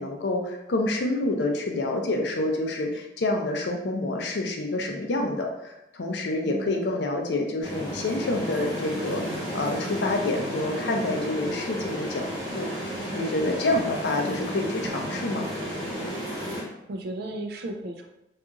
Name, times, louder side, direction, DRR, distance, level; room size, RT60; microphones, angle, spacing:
voice 1, 0.0-12.3 12.5-12.7 13.1-15.5, left 2 dB, 65° left, 2 dB, 0.5 m, -28 dB
voice 2, 6.4-6.9 14.2-14.7 16.9-18.1, right 1 dB, 55° right, 4 dB, 0.3 m, -35 dB
sound 1, 7.6-16.6, equal, 20° right, 1.2 m, -33 dB
2.8 x 2.4 x 2.4 m, 0.87 s
head